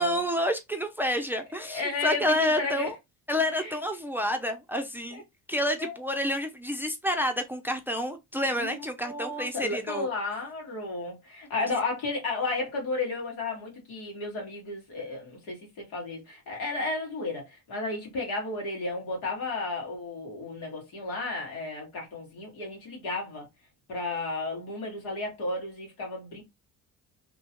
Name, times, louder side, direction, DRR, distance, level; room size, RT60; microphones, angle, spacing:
voice 1, 0.0-2.9 3.3-5.2 5.5-10.1 11.7-11.8, left 1 dB, 5° right, 0.5 m, -29 dB
voice 2, 1.6-2.9 3.6-3.8 5.1-5.2 5.8-6.0 8.6-23.5 23.9-26.4, left 3 dB, 85° left, 1.7 m, -33 dB
2.9 x 2.3 x 2.8 m
supercardioid pair, 80°, 34 cm